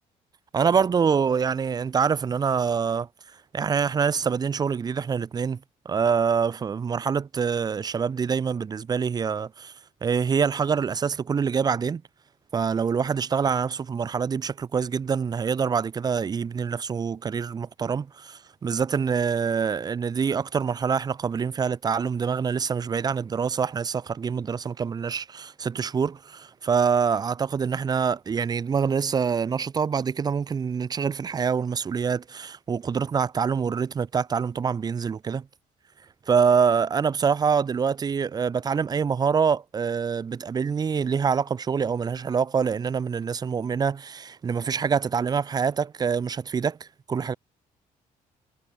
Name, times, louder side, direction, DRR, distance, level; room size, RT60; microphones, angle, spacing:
voice 1, 0.5-3.1 3.5-5.6 5.9-9.7 10.0-12.0 12.5-35.5 36.3-47.3, right 6 dB, 25° right, 0.4 m, -25 dB
cardioid pair, 90°, 15 cm